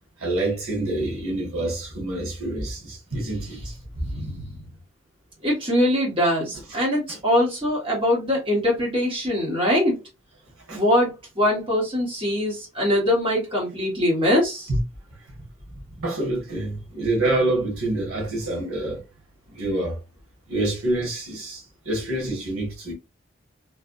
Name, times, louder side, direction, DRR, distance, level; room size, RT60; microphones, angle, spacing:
voice 1, 0.2-3.8 7.1-7.2 10.7-10.8 14.7-14.8 15.3-15.4 15.9-19.0 19.5-20.0 20.5-22.9, right 2 dB, 80° right, 1.5 m, -27 dB
voice 2, 5.4-10.0 10.7-14.7, left 1 dB, 25° right, 1.6 m, -22 dB
3.3 x 2.7 x 2.6 m
head